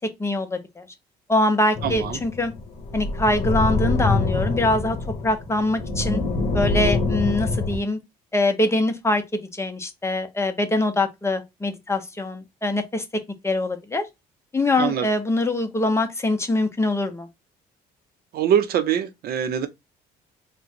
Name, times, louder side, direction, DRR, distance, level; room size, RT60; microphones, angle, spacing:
voice 1, 0.2-0.9 1.3-2.5 2.9-5.0 5.2-6.2 6.5-8.0 8.3-13.0 13.4-14.1 14.5-17.3, left 2 dB, 15° left, 1.0 m, -23 dB
sound 1, 1.7-7.8, left 3 dB, 40° left, 1.4 m, -25 dB
voice 2, 1.8-2.2 14.8-15.1 18.3-19.7, right 9 dB, 65° right, 0.8 m, -23 dB
3.9 x 2.3 x 4.5 m
cardioid pair, 110°, 17 cm